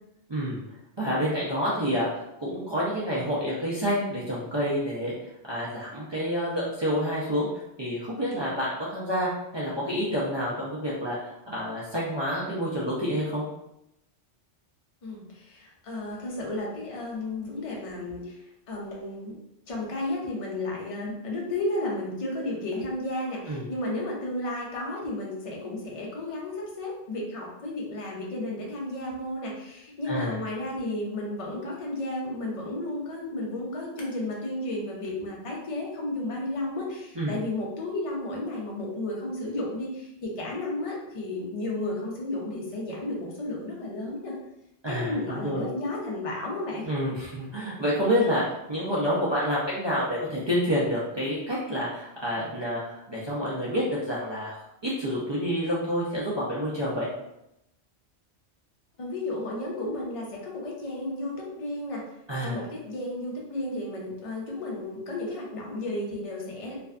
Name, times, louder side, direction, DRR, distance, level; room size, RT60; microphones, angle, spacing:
voice 1, 0.3-0.6 1.0-5.1 5.5-7.5 7.8-13.4 23.5-23.6 30.0-30.4 37.2-37.3 44.8-45.6 46.8-54.6 54.8-57.1 62.3-62.6, equal, 50° right, -7 dB, 0.3 m, -28 dB
voice 2, 15.0-18.4 18.7-19.3 19.7-44.3 44.9-46.8 59.0-62.0 62.4-66.8, left 2 dB, 40° left, -2 dB, 0.5 m, -33 dB
2.5 x 2.2 x 2.4 m, 0.84 s
omnidirectional pair, 1.2 m